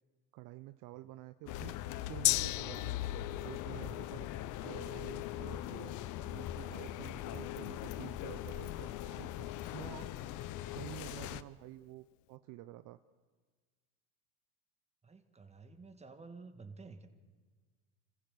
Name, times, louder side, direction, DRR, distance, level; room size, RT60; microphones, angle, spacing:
voice 1, 0.3-1.7 2.1-3.0 3.4-4.3 4.6-6.0 6.2-9.5 9.7-10.1 10.6-13.0, right 16 dB, 55° right, 12 dB, 0.7 m, -49 dB
sound 1, 1.5-11.4, left 13 dB, 50° left, 0.8 m, -41 dB
Gong, 2.2-10.0 10.3-10.4, left 18 dB, 90° left, 0.5 m, -40 dB
voice 2, 15.0-17.1, right 4 dB, 15° right, 8 dB, 1.9 m, -51 dB
26.5 x 15.0 x 6.7 m, 1.4 s
supercardioid pair, 90°, 38 cm